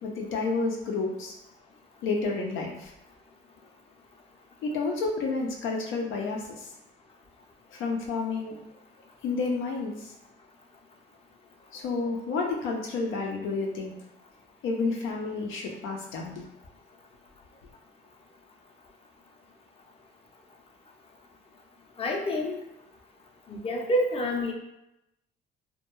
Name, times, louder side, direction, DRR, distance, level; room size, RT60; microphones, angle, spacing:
voice 1, 0.0-1.3 2.0-2.9 4.6-6.7 7.7-8.5 9.2-10.1 11.7-13.9 14.6-16.4, left 3 dB, 90° left, 0 dB, 0.5 m, -30 dB
voice 2, 22.0-22.6 23.5-24.5, equal, 30° left, 0 dB, 0.5 m, -27 dB
2.2 x 2.2 x 3.0 m, 0.86 s
cardioid pair, 90°, 20 cm